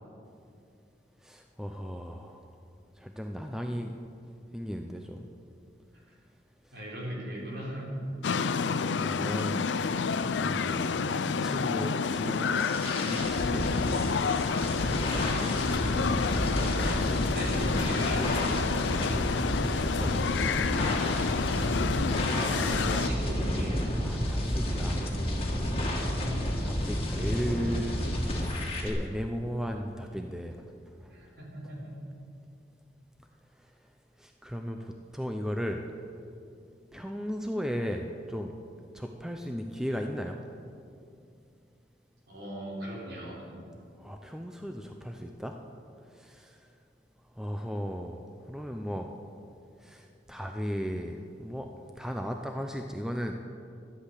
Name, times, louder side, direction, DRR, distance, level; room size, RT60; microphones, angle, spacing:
voice 1, 1.2-2.4 3.0-3.9 4.5-5.3 9.0-9.7 10.4-11.1 11.4-12.4 13.1-14.0 19.2-20.6 21.5-21.8 22.2-23.0 24.0-25.0 25.5-25.8 26.6-30.6 34.4-34.8 35.1-35.8 36.9-38.5 38.9-40.4 44.0-45.5 47.4-48.2 48.5-49.1 49.9-50.0 50.3-51.7 52.0-53.3, equal, 5° right, 4 dB, 0.5 m, -36 dB
voice 2, 6.7-7.9 16.5-18.7 22.6-23.8 31.1-32.0 42.3-43.4, right 1 dB, 60° right, -3 dB, 3.7 m, -39 dB
sound 1, 8.2-23.1, left 5 dB, 80° left, 0.5 m, -29 dB
sound 2, 12.1-28.9, equal, 30° left, 1.9 m, -31 dB
12.0 x 8.5 x 8.2 m, 2.5 s
head